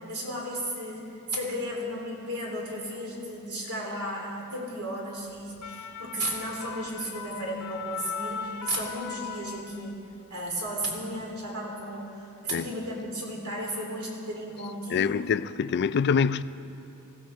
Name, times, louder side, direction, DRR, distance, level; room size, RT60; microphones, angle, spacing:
voice 1, 0.1-10.0 10.3-15.2, right 1 dB, 80° right, 3.3 m, -34 dB
sound 1, 5.4-10.1 10.5-10.7, left 7 dB, 80° left, 0.7 m, -39 dB
voice 2, 14.9-16.4, left 6 dB, 50° left, 0.3 m, -25 dB
19.5 x 15.5 x 4.5 m
head